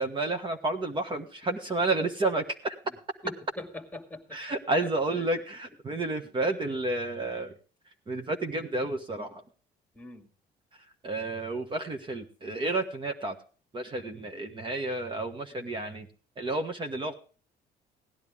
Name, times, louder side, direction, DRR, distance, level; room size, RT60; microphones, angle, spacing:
voice 1, 0.0-2.8 4.3-7.5 8.1-9.4 11.0-13.4 13.7-16.1 16.4-17.1, right 2 dB, 30° right, 5 dB, 1.4 m, -31 dB
voice 2, 3.2-4.4 4.8-5.3 6.1-6.2 10.0-10.3, left 2 dB, 10° left, 8 dB, 2.1 m, -43 dB
17.0 x 10.5 x 3.6 m, 0.38 s
cardioid pair, 110°, 17 cm